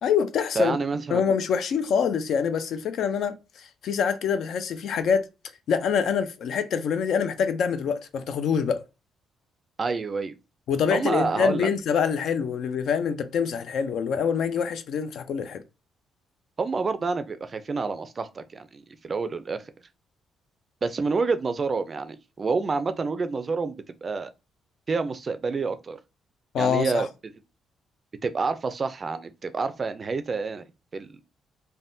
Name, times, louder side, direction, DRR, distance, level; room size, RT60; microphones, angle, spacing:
voice 1, 0.0-0.8 1.1-5.3 5.7-8.8 10.7-15.6 26.5-27.0, left 7 dB, 70° left, 0.4 m, -25 dB
voice 2, 0.6-1.2 9.8-10.4 10.9-11.7 16.6-19.6 20.8-23.8 24.0-24.3 24.9-26.0 26.6-27.1 28.2-30.6 30.9-31.2, right 4 dB, 35° right, 0.3 m, -28 dB
3.4 x 2.1 x 2.6 m
cardioid pair, 90°, 0 cm